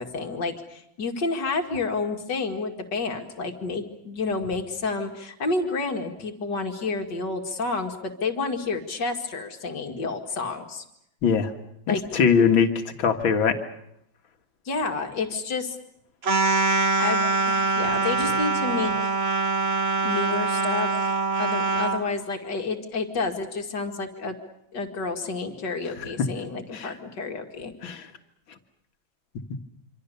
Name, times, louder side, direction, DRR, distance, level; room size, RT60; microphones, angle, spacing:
voice 1, 0.0-10.8 11.9-12.0 14.7-15.8 17.0-19.1 20.0-21.1 21.4-24.4 24.7-27.7, left 3 dB, 60° left, 4 dB, 2.8 m, -30 dB
voice 2, 11.2-11.5 11.9-13.6 26.2-26.3 26.7-26.9 27.8-28.1, left 6 dB, 75° left, 6 dB, 2.5 m, -21 dB
sound 1, 16.2-22.0, right 3 dB, 35° right, 1.3 m, -24 dB
26.5 x 26.0 x 6.9 m, 0.78 s
omnidirectional pair, 2.2 m